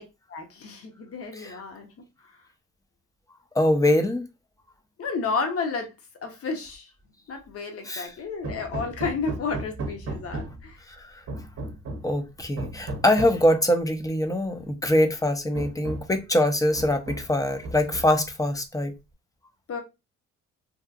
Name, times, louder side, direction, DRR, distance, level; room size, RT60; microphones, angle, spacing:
voice 1, 0.3-1.9 5.0-5.9 6.2-6.8 7.3-10.7 19.7-19.8, left 4 dB, 50° left, 0.9 m, -31 dB
voice 2, 3.5-4.2 7.8-8.1 10.9-11.2 12.0-18.9, left 1 dB, 10° left, 0.5 m, -23 dB
Hammer, 8.4-10.7 11.3-12.2 12.6-13.5 14.5-14.6 15.0-15.1 15.5-16.2 16.8-17.4 17.6-18.3, right 2 dB, 50° right, 0.7 m, -35 dB
2.8 x 2.4 x 2.4 m
cardioid pair, 90°, 30 cm